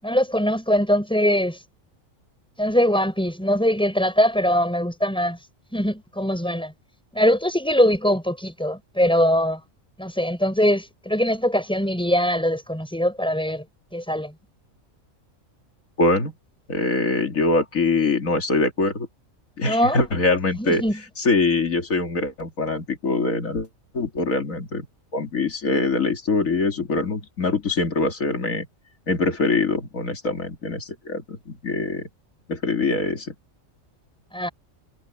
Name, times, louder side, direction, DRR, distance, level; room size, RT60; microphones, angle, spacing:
voice 1, 0.0-1.6 2.6-5.4 5.7-6.7 7.1-9.6 10.0-13.6 13.9-14.3 19.6-20.0 20.6-21.0 34.3-34.5, equal, 5° left, 5.7 m, -22 dB
voice 2, 16.0-16.3 16.7-19.1 19.6-20.8 21.2-23.7 23.9-24.8 25.1-28.7 29.1-32.1 32.5-33.3, left 3 dB, 80° left, 2.7 m, -23 dB
omnidirectional pair, 1.4 m